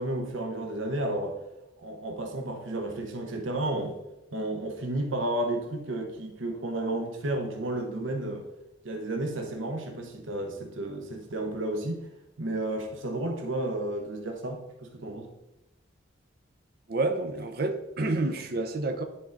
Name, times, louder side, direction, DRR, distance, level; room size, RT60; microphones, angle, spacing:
voice 1, 0.0-1.4 1.8-4.0 4.3-8.4 8.8-12.0 12.4-15.3, right 1 dB, 90° right, 0.9 m, -32 dB
voice 2, 16.9-19.0, right 2 dB, 50° right, 0.7 m, -29 dB
9.9 x 3.8 x 3.9 m
head